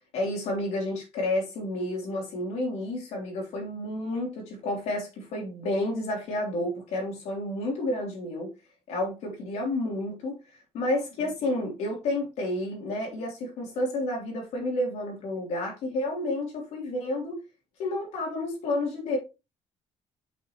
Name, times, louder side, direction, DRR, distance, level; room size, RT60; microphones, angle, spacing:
voice 1, 0.1-8.5 8.9-17.4 17.8-19.2, left 1 dB, 80° left, 0 dB, 3.0 m, -30 dB
6.1 x 5.5 x 3.0 m, 0.27 s
cardioid pair, 180°, 11 cm